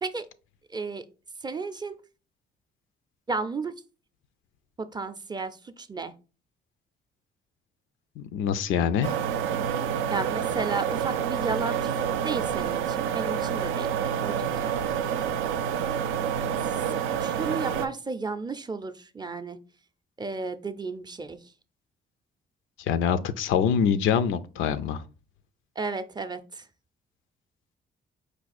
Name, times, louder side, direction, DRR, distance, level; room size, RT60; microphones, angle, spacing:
voice 1, 0.7-1.0 1.4-2.0 3.3-3.7 4.8-6.1 10.1-14.8 17.2-19.6 20.2-21.4 25.8-26.7, right 4 dB, 20° right, 0.4 m, -33 dB
voice 2, 8.2-9.2 22.9-25.0, left 7 dB, 80° left, 0.5 m, -25 dB
sound 1, 9.0-17.9, right 8 dB, 90° right, 0.4 m, -28 dB
4.7 x 2.4 x 4.1 m
cardioid pair, 90°, 20 cm